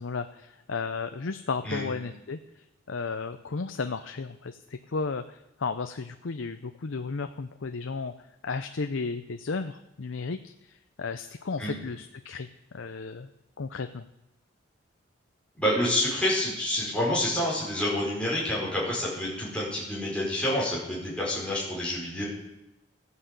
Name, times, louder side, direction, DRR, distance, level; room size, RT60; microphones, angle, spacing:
voice 1, 0.0-2.4 2.9-8.1 8.4-12.5 12.7-13.3 13.6-14.1, left 4 dB, 75° left, 9 dB, 0.6 m, -34 dB
voice 2, 15.5-22.2, left 1 dB, 5° left, -6 dB, 5.0 m, -28 dB
14.0 x 9.8 x 8.1 m, 0.90 s
head